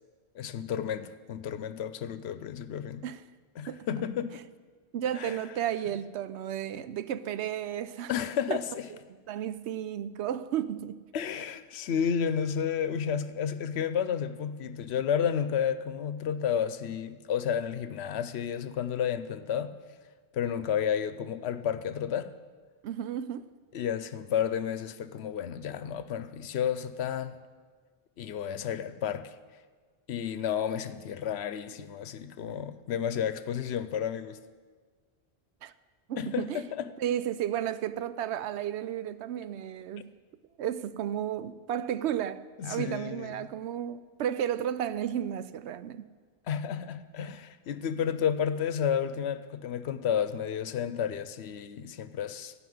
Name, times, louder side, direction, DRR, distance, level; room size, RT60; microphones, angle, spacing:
voice 1, 0.3-3.1 3.6-4.5 5.2-5.4 8.1-8.9 11.1-19.7 20.3-22.3 23.7-27.4 28.2-29.3 30.1-34.4 36.2-36.9 42.6-43.4 46.5-52.5, left 8 dB, 75° left, 0.9 m, -31 dB
voice 2, 4.9-8.1 8.5-8.6 9.3-11.0 22.8-23.5 35.6-35.7 36.1-36.6 37.0-40.1 40.6-46.1, right 10 dB, 85° right, 0.9 m, -33 dB
14.5 x 6.0 x 9.3 m
omnidirectional pair, 1.1 m